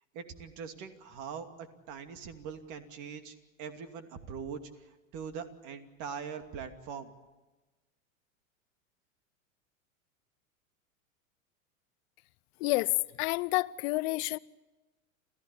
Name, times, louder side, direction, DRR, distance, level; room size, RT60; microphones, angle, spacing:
voice 1, 0.1-7.1, right 6 dB, 45° right, 2.7 m, -42 dB
voice 2, 12.6-14.4, left 22 dB, 50° left, 0.8 m, -29 dB
28.0 x 15.0 x 8.6 m
hypercardioid pair, 90°, 41 cm